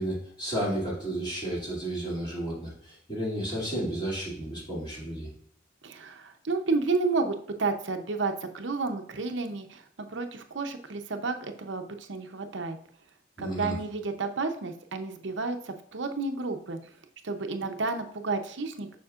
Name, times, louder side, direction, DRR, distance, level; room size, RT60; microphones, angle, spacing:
voice 1, 0.0-5.3 13.4-13.7, right 1 dB, 25° left, -6 dB, 2.6 m, -32 dB
voice 2, 5.8-12.8 13.4-16.9 17.2-19.0, right 3 dB, 80° right, 6 dB, 0.8 m, -31 dB
7.1 x 5.8 x 2.5 m, 0.63 s
head